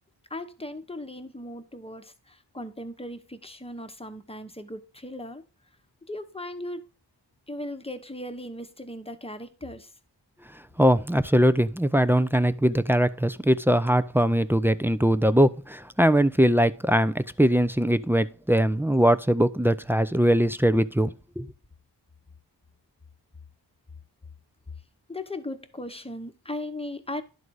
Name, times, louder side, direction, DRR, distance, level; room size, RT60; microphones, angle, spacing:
voice 1, 0.3-5.4 6.1-6.9 7.5-9.9 25.1-27.2, left 1 dB, 15° left, 1.0 m, -37 dB
voice 2, 10.8-21.5, equal, 5° right, 0.4 m, -21 dB
11.0 x 4.0 x 4.7 m
wide cardioid pair, 55°, 42 cm